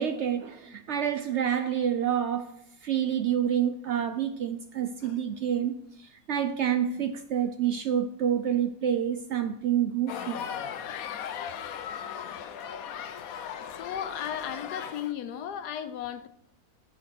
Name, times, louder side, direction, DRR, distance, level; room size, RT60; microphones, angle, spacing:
voice 1, 0.0-2.5 2.8-10.4, right 9 dB, 65° right, 0.7 m, -28 dB
sound 1, 10.1-15.1, left 8 dB, 70° left, 1.1 m, -37 dB
voice 2, 12.2-12.6 13.8-16.3, left 9 dB, 90° left, 1.3 m, -36 dB
7.3 x 5.7 x 6.0 m
omnidirectional pair, 1.7 m